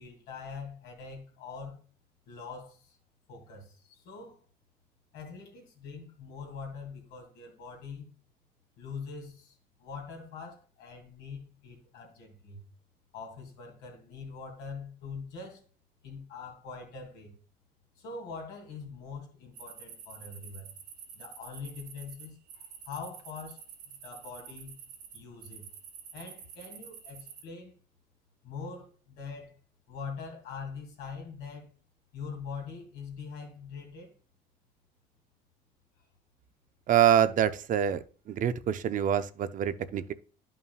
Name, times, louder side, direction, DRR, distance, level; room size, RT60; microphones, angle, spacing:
voice 1, 0.0-1.8 2.3-3.0 3.3-4.4 5.1-8.1 8.8-12.7 13.1-15.6 16.0-17.3 18.0-20.7 21.1-24.7 25.1-25.7 26.1-27.7 28.4-29.6 29.9-31.7 32.1-34.1, left 5 dB, 90° left, 2.6 m, -43 dB
sound 1, 19.5-27.4, right 7 dB, 80° right, 1.9 m, -48 dB
voice 2, 36.9-40.1, right 10 dB, 50° right, 0.5 m, -26 dB
11.0 x 5.5 x 2.4 m
cardioid pair, 110°, 17 cm